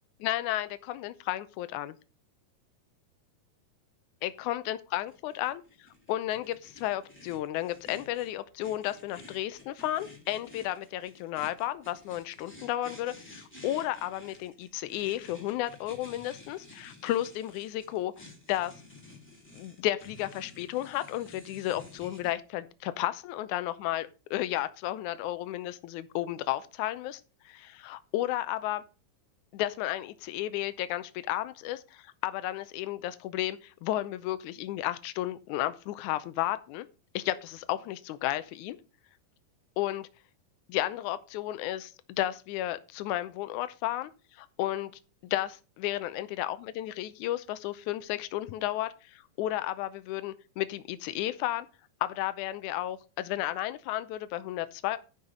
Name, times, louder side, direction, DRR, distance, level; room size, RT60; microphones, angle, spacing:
voice 1, 0.2-1.9 4.2-5.6 6.1-18.7 19.5-28.8 29.5-36.9 37.1-38.8 39.8-40.1 40.7-44.9 45.2-51.7 52.0-55.0, left 14 dB, 85° left, 1.7 m, -33 dB
sound 1, 5.1-22.3, left 2 dB, 5° left, 2.9 m, -52 dB
10.5 x 5.7 x 5.0 m
omnidirectional pair, 4.3 m